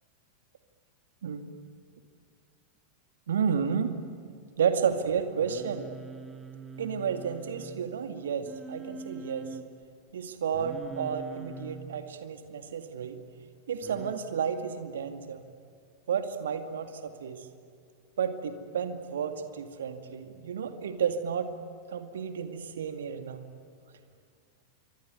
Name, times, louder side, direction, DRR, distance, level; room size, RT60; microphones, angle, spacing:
voice 1, 1.2-1.5 3.3-3.9 4.6-5.9 6.8-9.6 10.1-13.2 13.7-15.4 16.1-17.5 18.2-21.5 21.9-23.4, right 7 dB, 65° right, 8 dB, 2.1 m, -31 dB
Singing, 5.4-7.8 8.5-9.6 10.5-11.9 13.8-14.1, right 4 dB, 15° right, 2.3 m, -43 dB
27.0 x 23.5 x 9.3 m, 2.2 s
figure-of-eight pair, 90°, 0 cm